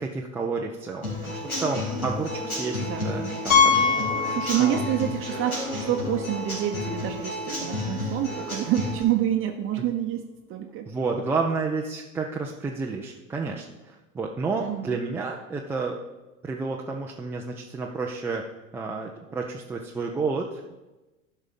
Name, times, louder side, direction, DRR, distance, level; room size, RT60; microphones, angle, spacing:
voice 1, 0.0-4.3 4.6-4.8 10.9-16.0 16.4-18.4 18.7-20.7, right 4 dB, 5° right, -1 dB, 0.3 m, -31 dB
Human voice / Acoustic guitar / Drum, 1.0-9.0, left 1 dB, 90° left, 3.2 m, -31 dB
Piano, 3.5-5.1 5.4-5.5 6.1-6.2 6.5-6.6 8.6-8.7, left 6 dB, 70° left, 3.4 m, -22 dB
voice 2, 4.3-10.9 14.6-15.0, right 11 dB, 30° right, 5 dB, 0.7 m, -27 dB
11.5 x 5.4 x 5.2 m, 1.1 s
figure-of-eight pair, 85°, 41 cm